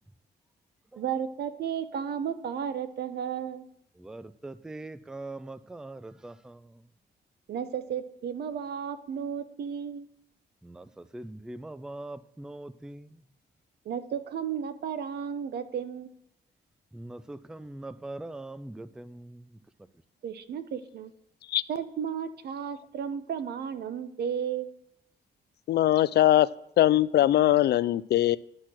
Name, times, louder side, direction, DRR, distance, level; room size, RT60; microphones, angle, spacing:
voice 1, 1.0-3.7 7.5-10.0 13.8-16.1 20.2-21.1 21.7-24.7, right 8 dB, 70° right, 0.9 m, -33 dB
voice 2, 4.0-6.9 10.6-13.2 16.9-19.6, right 2 dB, 5° right, 0.3 m, -42 dB
voice 3, 25.7-26.5 26.8-28.4, left 13 dB, 70° left, 0.4 m, -21 dB
10.5 x 6.0 x 6.3 m
wide cardioid pair, 150°, 18 cm